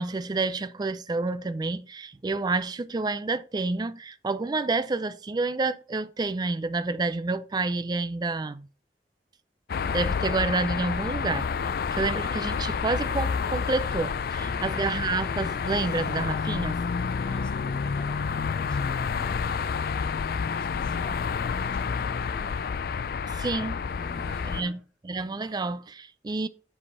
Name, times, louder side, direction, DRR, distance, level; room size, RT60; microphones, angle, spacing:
voice 1, 0.0-8.7 9.9-16.8 23.3-23.8 24.5-24.8 25.1-26.5, right 3 dB, 25° right, 0.4 m, -29 dB
sound 1, 9.7-24.6, left 5 dB, 55° left, 0.4 m, -29 dB
voice 2, 14.4-15.0 17.2-22.6 24.0-24.8, left 1 dB, 5° left, 1.5 m, -47 dB
7.6 x 4.9 x 4.1 m
head